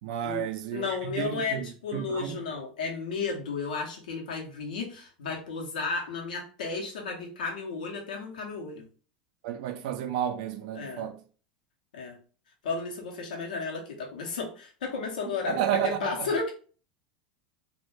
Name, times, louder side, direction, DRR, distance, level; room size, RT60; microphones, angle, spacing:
voice 1, 0.0-2.4 9.4-11.2 15.5-16.3, right 9 dB, 70° right, 0.4 m, -32 dB
voice 2, 0.7-8.9 10.8-11.0 11.9-12.2 12.6-16.5, left 4 dB, 85° left, 0.6 m, -33 dB
2.1 x 2.1 x 3.1 m
hypercardioid pair, 95°, 4 cm